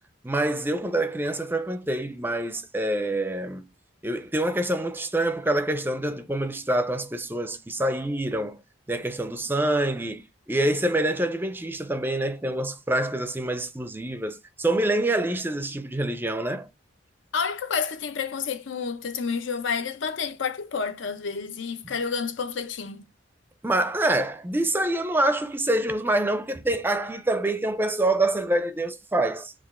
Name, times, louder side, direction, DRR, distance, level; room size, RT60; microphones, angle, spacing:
voice 1, 0.2-3.7 4.0-8.6 8.9-16.7 21.8-21.9 23.6-29.5, right 1 dB, 10° right, 0.4 m, -26 dB
voice 2, 17.3-23.0, left 5 dB, 85° left, 0.6 m, -29 dB
5.0 x 2.4 x 3.5 m
head